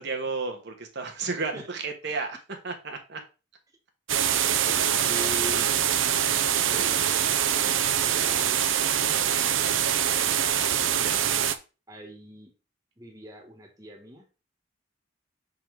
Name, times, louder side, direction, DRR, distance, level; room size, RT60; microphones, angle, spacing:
voice 1, 0.0-2.4 2.6-3.2 5.5-5.8 7.0-7.1 11.0-11.2, right 4 dB, 60° right, 3 dB, 1.2 m, -34 dB
voice 2, 1.2-1.7 4.6-5.7 6.5-7.2 8.0-8.6 9.0-11.2 11.9-12.5 13.0-14.2, equal, 15° right, 1 dB, 1.4 m, -42 dB
sound 1, 4.1-11.5, right 9 dB, 75° right, 0.6 m, -24 dB
6.2 x 3.9 x 4.6 m, 0.31 s
head